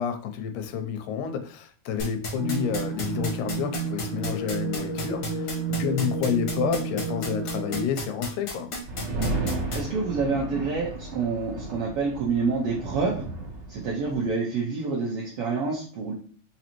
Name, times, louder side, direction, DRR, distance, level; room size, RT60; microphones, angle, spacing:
voice 1, 0.0-5.5 5.8-8.7, left 7 dB, 85° left, 7 dB, 2.1 m, -29 dB
sound 1, 2.0-9.8, left 3 dB, 70° left, 0.9 m, -32 dB
sound 2, 2.3-7.8, right 4 dB, 45° left, 0.3 m, -31 dB
sound 3, 8.8-14.3, right 2 dB, 55° right, 1.3 m, -33 dB
voice 2, 9.7-13.3 13.7-16.1, right 4 dB, 80° right, -2 dB, 1.3 m, -27 dB
5.2 x 2.7 x 2.9 m, 0.43 s
omnidirectional pair, 3.6 m